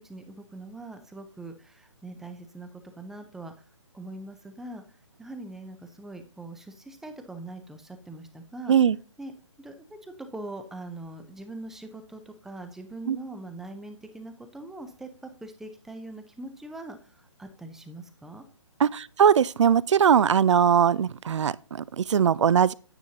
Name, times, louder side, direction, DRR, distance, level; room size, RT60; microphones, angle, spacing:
voice 1, 0.0-3.6 3.9-8.7 9.2-9.3 9.6-18.4, right 2 dB, ahead, 0.5 m, -42 dB
voice 2, 18.8-22.7, right 8 dB, 65° right, 0.4 m, -21 dB
9.3 x 8.2 x 2.8 m
hypercardioid pair, 150°, 16 cm